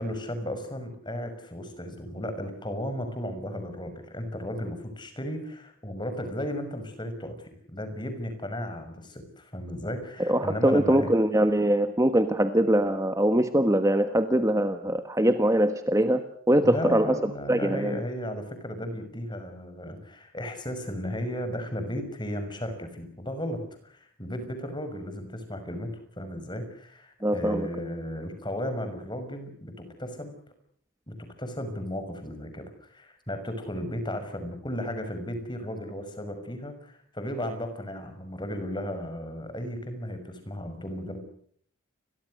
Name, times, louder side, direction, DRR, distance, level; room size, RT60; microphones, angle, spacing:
voice 1, 0.0-11.1 16.6-25.9 26.2-29.7 30.0-30.4 31.1-41.2, equal, 20° left, 8 dB, 6.0 m, -35 dB
voice 2, 10.2-18.0 27.2-27.7, right 1 dB, 15° right, 8 dB, 1.3 m, -23 dB
29.5 x 23.0 x 6.5 m, 0.63 s
head